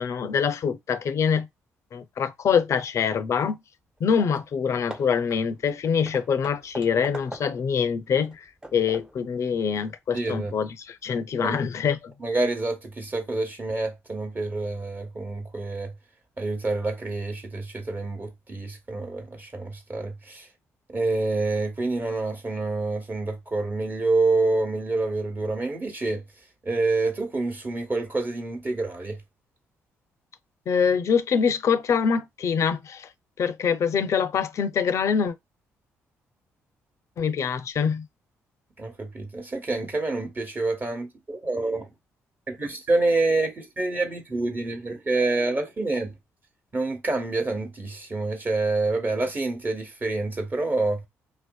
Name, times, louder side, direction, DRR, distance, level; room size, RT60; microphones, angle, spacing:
voice 1, 0.0-1.5 1.9-3.6 4.0-8.4 8.7-12.1 30.7-33.1 33.4-35.3 37.2-38.1, left 6 dB, 55° left, 0.4 m, -24 dB
Hammer / Wood, 4.0-4.1 4.3-4.6 4.9-7.8 8.2-9.3, right 1 dB, 15° right, 0.5 m, -42 dB
voice 2, 10.1-10.5 11.4-11.6 12.2-15.9 16.4-20.5 20.9-26.2 26.6-29.2 38.8-41.9 42.5-46.2 46.7-51.0, right 3 dB, 30° right, 0.9 m, -27 dB
2.5 x 2.1 x 2.2 m
supercardioid pair, 55°, 6 cm